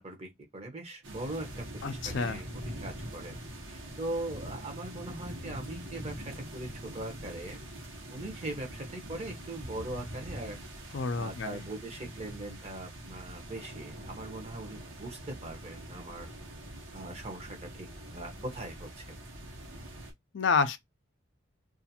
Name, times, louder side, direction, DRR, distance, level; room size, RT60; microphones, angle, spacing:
voice 1, 0.0-3.4 3.7-7.6 8.1-10.6 11.1-16.3 16.9-19.2, right 1 dB, 30° right, 0.8 m, -41 dB
sound 1, 1.0-20.1, right 1 dB, 75° right, 1.0 m, -44 dB
voice 2, 1.8-2.4 10.9-11.6 20.3-20.8, left 5 dB, 60° left, 0.4 m, -29 dB
2.5 x 2.4 x 2.7 m
head